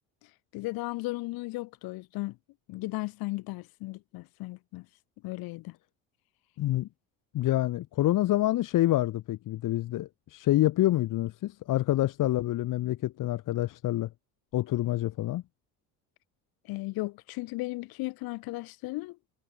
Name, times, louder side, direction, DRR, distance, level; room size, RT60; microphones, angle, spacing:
voice 1, 0.5-2.4 2.7-4.9 5.2-5.8 16.6-19.2, left 21 dB, 75° left, 5.5 m, -35 dB
voice 2, 6.6-6.9 7.3-14.1 14.5-15.4, left 15 dB, 60° left, 1.6 m, -27 dB
supercardioid pair, 100°, 36 cm